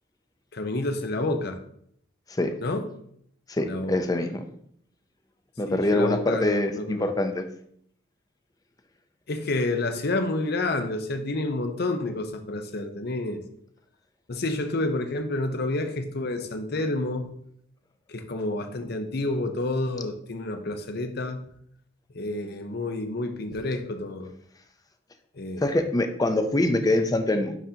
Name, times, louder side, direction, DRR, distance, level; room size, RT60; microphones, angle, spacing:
voice 1, 0.5-1.6 2.6-2.9 3.7-3.9 5.7-7.1 9.3-13.4 14.3-17.4 18.1-21.4 22.1-24.3 25.3-25.8, left 2 dB, 55° left, 7 dB, 0.7 m, -29 dB
voice 2, 3.5-4.5 5.6-7.4 25.6-27.6, left 1 dB, 20° left, 7 dB, 0.5 m, -24 dB
10.0 x 3.8 x 2.8 m, 0.68 s
head